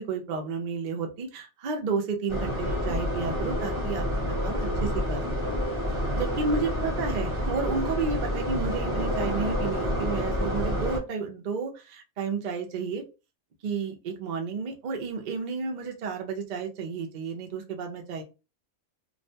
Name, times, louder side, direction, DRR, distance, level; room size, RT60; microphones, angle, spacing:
voice 1, 0.0-5.5 6.1-13.0 13.6-18.2, right 5 dB, 60° right, 3 dB, 0.5 m, -32 dB
sound 1, 2.3-11.0, equal, 25° right, 0.8 m, -28 dB
sound 2, 2.6-6.9, left 10 dB, 60° left, 1.0 m, -43 dB
2.5 x 2.1 x 2.7 m, 0.30 s
omnidirectional pair, 1.4 m